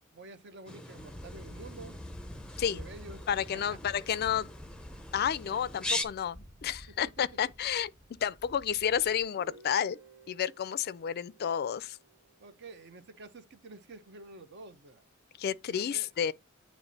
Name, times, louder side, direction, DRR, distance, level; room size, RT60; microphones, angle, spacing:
voice 1, 0.1-2.0 2.7-3.9 7.0-7.2 12.4-15.0 15.7-16.1, right 3 dB, 55° right, 0.8 m, -49 dB
sound 1, 0.7-6.0, left 2 dB, 5° left, 0.6 m, -40 dB
sound 2, 0.9-9.2, equal, 15° right, 1.5 m, -49 dB
voice 2, 3.3-4.5 5.1-7.9 8.2-10.0 10.3-12.0 15.4-16.3, left 8 dB, 50° left, 0.4 m, -31 dB
Guitar, 9.4-13.2, right 4 dB, 80° right, 1.1 m, -58 dB
8.9 x 3.1 x 4.1 m
head